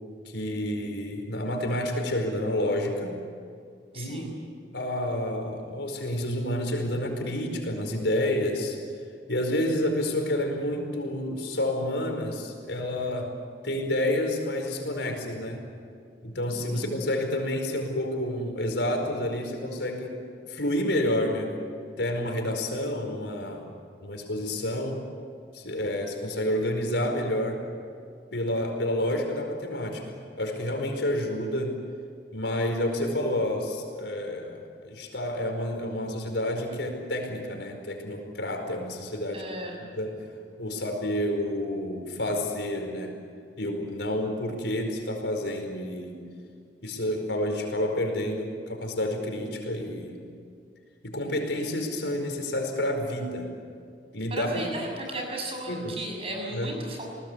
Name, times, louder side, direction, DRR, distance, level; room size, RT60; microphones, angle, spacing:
voice 1, 0.2-3.1 3.9-4.3 4.7-8.8 9.3-13.3 13.6-15.6 16.2-21.5 22.0-23.7 24.0-25.0 25.5-27.6 28.3-31.8 32.3-39.5 39.8-40.2 40.6-43.1 43.6-46.2 46.8-50.2 51.0-53.5 54.1-54.7 55.7-56.0 56.5-56.8, left 1 dB, 80° left, 4 dB, 4.9 m, -29 dB
voice 2, 3.9-4.3 16.5-16.9 39.3-39.8 54.3-57.1, right 1 dB, 30° right, 0 dB, 6.7 m, -35 dB
30.0 x 19.5 x 8.2 m, 2.3 s
head